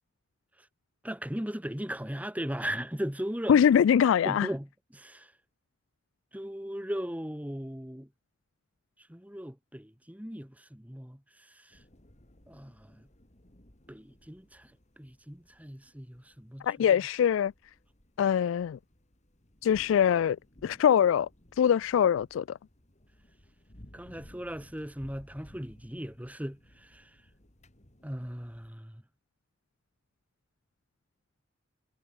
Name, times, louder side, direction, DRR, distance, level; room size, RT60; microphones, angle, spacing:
voice 1, 1.0-3.6 4.2-5.3 6.3-8.1 9.1-11.2 11.6-11.8 12.5-13.1 13.9-14.7 15.0-17.0 23.9-27.1 28.0-29.0, equal, 10° right, 1.8 m, -38 dB
voice 2, 3.5-4.5 16.6-17.5 18.2-18.8 19.6-20.4 20.6-21.3 21.6-22.6, left 8 dB, 85° left, 0.3 m, -23 dB
sound 1, 11.7-28.7, left 1 dB, 40° left, 2.8 m, -58 dB
head